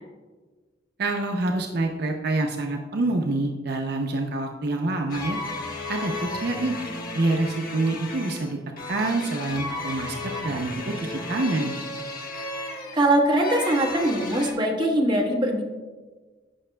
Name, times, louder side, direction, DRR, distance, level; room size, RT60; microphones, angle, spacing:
voice 1, 1.0-5.4 5.9-6.8 7.1-8.6 8.9-10.2 10.4-11.8, right 2 dB, 60° right, 2 dB, 0.6 m, -26 dB
sound 1, 5.1-14.5, left 2 dB, 50° left, 1.1 m, -34 dB
voice 2, 12.6-15.6, right 1 dB, 25° right, -1 dB, 1.1 m, -22 dB
15.0 x 5.8 x 2.2 m, 1.4 s
head